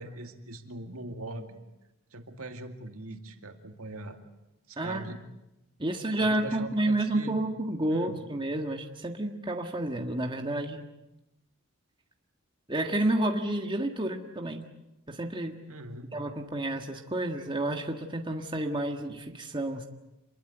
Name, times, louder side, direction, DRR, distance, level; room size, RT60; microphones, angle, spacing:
voice 1, 0.0-1.6 2.1-4.2 4.7-5.2 5.9-7.4 7.9-8.2 15.7-16.1, right 2 dB, 75° right, 6 dB, 2.4 m, -41 dB
voice 2, 4.8-5.1 5.8-10.9 12.7-14.7 15.1-15.6 16.1-19.9, right 1 dB, 20° right, 3 dB, 1.6 m, -30 dB
27.0 x 22.0 x 8.0 m, 0.94 s
head